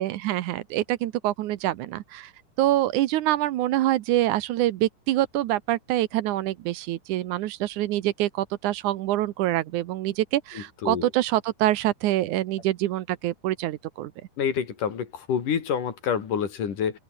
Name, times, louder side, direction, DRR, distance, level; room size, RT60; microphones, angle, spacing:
voice 1, 0.0-2.3 2.6-14.1, right 14 dB, 75° right, 2.3 m, -25 dB
voice 2, 10.5-11.1 14.4-17.0, left 7 dB, 80° left, 4.4 m, -28 dB
open air
omnidirectional pair, 3.6 m